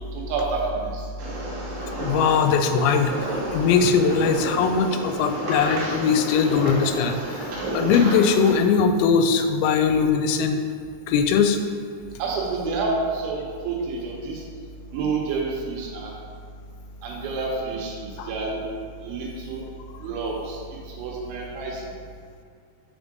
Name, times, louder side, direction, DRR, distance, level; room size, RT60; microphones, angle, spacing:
voice 1, 0.1-1.0 12.2-14.4 14.9-16.1 17.0-17.9 18.3-18.6 19.0-19.6 20.0-20.6 21.0-21.8, right 3 dB, 85° right, -2 dB, 3.3 m, -28 dB
sound 1, 1.2-8.5, right 1 dB, 65° right, 2.5 m, -31 dB
voice 2, 2.0-3.1 3.5-7.2 7.7-10.6 11.1-11.6 18.2-18.3, left 6 dB, 85° left, 7 dB, 2.9 m, -20 dB
6.7 x 3.6 x 5.1 m, 2.2 s
omnidirectional pair, 5.2 m